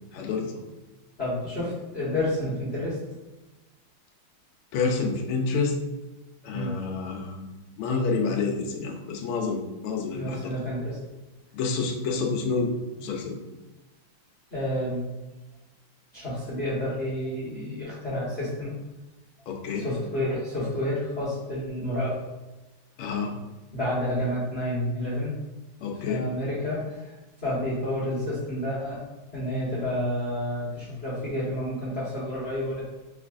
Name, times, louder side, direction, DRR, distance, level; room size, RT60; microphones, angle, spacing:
voice 1, 0.1-0.6 4.7-5.8 6.4-7.5 7.8-10.5 11.5-13.4 19.5-19.9 23.0-23.3 25.8-26.3, left 4 dB, 85° left, 1 dB, 1.5 m, -28 dB
voice 2, 1.2-3.0 6.5-6.7 10.1-11.0 12.1-12.2 14.5-15.0 16.1-18.7 19.7-22.2 23.7-25.3 25.9-27.1 27.4-29.0 29.3-32.8, left 1 dB, 35° left, -9 dB, 1.2 m, -30 dB
5.7 x 3.2 x 2.5 m, 1.0 s
omnidirectional pair, 2.4 m